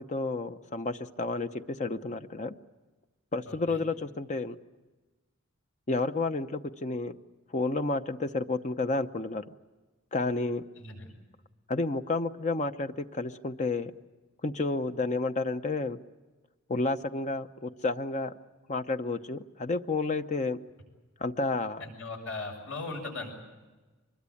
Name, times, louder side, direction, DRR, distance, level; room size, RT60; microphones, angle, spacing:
voice 1, 0.0-2.5 3.3-4.6 5.9-7.2 7.5-9.4 10.1-10.6 11.7-13.9 14.4-16.0 16.7-18.3 18.7-20.6 21.2-21.8, left 3 dB, 35° left, 9 dB, 0.8 m, -31 dB
voice 2, 3.5-3.8 10.8-11.1 21.8-23.4, left 3 dB, 70° left, 3 dB, 7.5 m, -38 dB
25.0 x 22.0 x 8.5 m, 1.2 s
head